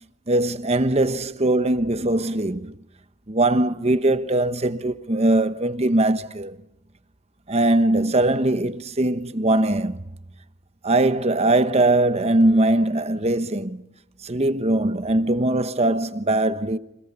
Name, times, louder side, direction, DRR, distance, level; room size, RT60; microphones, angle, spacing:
voice 1, 0.3-2.8 3.3-6.6 7.5-10.0 10.8-13.8 14.2-16.8, right 2 dB, 30° right, 1.1 m, -21 dB
30.0 x 27.5 x 7.0 m
head